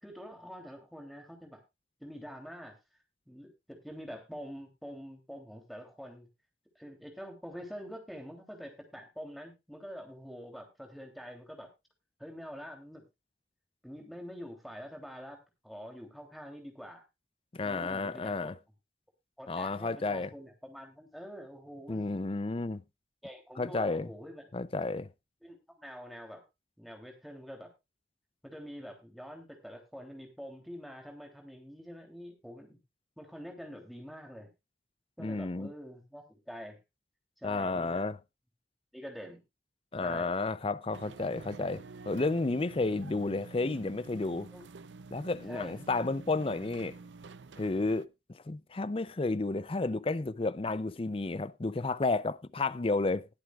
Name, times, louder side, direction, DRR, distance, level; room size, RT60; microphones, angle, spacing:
voice 1, 0.0-1.6 2.0-2.7 3.3-6.3 6.7-11.7 12.2-13.0 13.8-17.0 17.6-18.5 19.4-22.1 23.2-24.4 25.4-26.4 26.8-27.7 28.4-32.8 33.2-34.5 35.2-36.8 37.4-38.0 38.9-39.4 40.0-40.4 44.5-44.7 45.5-45.7, equal, ahead, 3.0 m, -46 dB
voice 2, 17.5-18.5 19.5-20.3 21.9-22.8 23.6-24.1 24.5-25.1 35.2-35.7 37.4-38.2 39.9-44.5 45.1-46.9 47.6-53.3, left 3 dB, 30° left, 0.5 m, -32 dB
sound 1, 40.9-48.1, right 4 dB, 85° right, 0.6 m, -49 dB
20.5 x 7.9 x 2.4 m
head